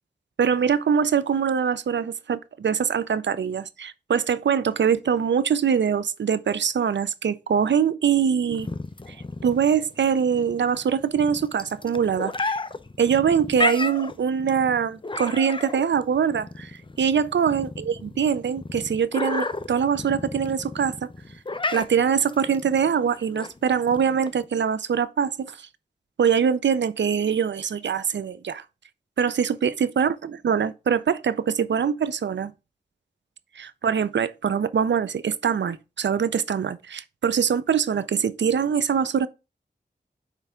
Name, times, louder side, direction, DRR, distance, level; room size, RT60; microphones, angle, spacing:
voice 1, 0.4-8.7 9.1-9.2 9.4-12.6 13.0-16.7 17.0-21.1 21.7-25.7 26.2-28.6 29.2-32.5 33.6-39.3, right 7 dB, 90° right, 0.4 m, -23 dB
sound 1, 8.5-24.5, left 3 dB, 30° left, 0.6 m, -33 dB
9.0 x 3.4 x 3.6 m
wide cardioid pair, 45°, 18 cm